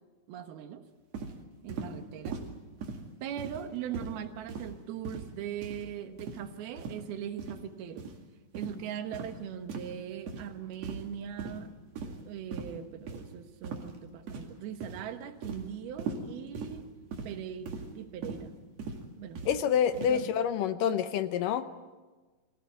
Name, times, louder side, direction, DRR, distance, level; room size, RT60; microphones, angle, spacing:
voice 1, 0.3-0.8 1.6-2.4 3.2-8.1 8.5-11.7 12.0-16.9 17.2-18.5 19.2-19.4 20.1-20.3, right 9 dB, 85° right, 8 dB, 3.2 m, -40 dB
sound 1, 1.1-1.3 1.7-1.9 2.2-2.5 2.8-3.0 3.4-3.7 3.9-4.1 4.5-4.7 5.0-5.3 5.6-5.8 6.2-6.4 6.8-7.0 7.4-7.6 8.0-8.1 8.5-8.8 9.1-9.3 9.7-9.9 10.3-10.5 10.8-11.1 11.4-11.6 12.0-12.2 12.5-12.7 13.1-13.2 13.6-13.9 14.3-14.6 14.8-15.0 15.4-15.6 16.0-16.2 16.5-16.7 17.1-17.3 17.7-17.9 18.2-18.4 18.8-19.0 19.3-19.5 19.9-20.2, right 5 dB, 50° right, 3.0 m, -39 dB
voice 2, 19.5-21.7, left 8 dB, 75° left, 11 dB, 2.2 m, -27 dB
24.0 x 16.5 x 9.4 m, 1.3 s
omnidirectional pair, 4.3 m